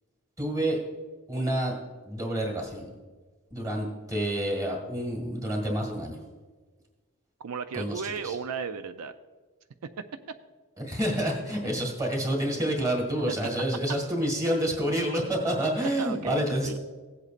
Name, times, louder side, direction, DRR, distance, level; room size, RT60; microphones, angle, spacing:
voice 1, 0.4-0.8 1.3-1.8 2.0-2.9 3.5-6.2 7.7-8.4 10.8-16.8, right 1 dB, 15° right, -1 dB, 1.9 m, -28 dB
voice 2, 7.4-9.1 16.0-16.8, right 6 dB, 85° right, 10 dB, 0.5 m, -34 dB
16.5 x 8.0 x 2.5 m, 1.4 s
head